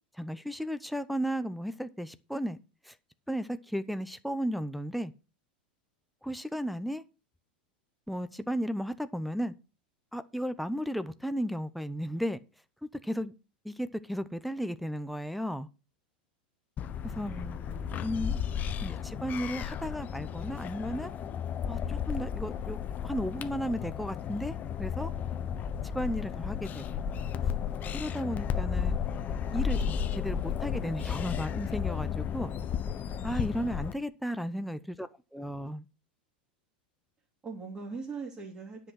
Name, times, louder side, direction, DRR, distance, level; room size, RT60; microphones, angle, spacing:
voice 1, 0.1-2.6 2.8-3.0 3.3-5.1 6.2-7.0 8.1-9.5 10.1-12.4 13.0-13.3 13.6-15.7 17.0-17.3 18.0-18.4 18.8-21.1 21.7-22.8 23.0-25.1 25.8-27.0 27.9-29.0 29.5-32.5 33.2-35.9, equal, ahead, 11 dB, 0.7 m, -34 dB
sound 1, 16.8-33.9, left 8 dB, 35° left, 0.9 m, -33 dB
voice 2, 17.3-18.3 34.4-34.9 37.4-38.9, right 4 dB, 25° right, -3 dB, 2.7 m, -42 dB
10.0 x 5.8 x 6.4 m, 0.32 s
hypercardioid pair, 95°, 5 cm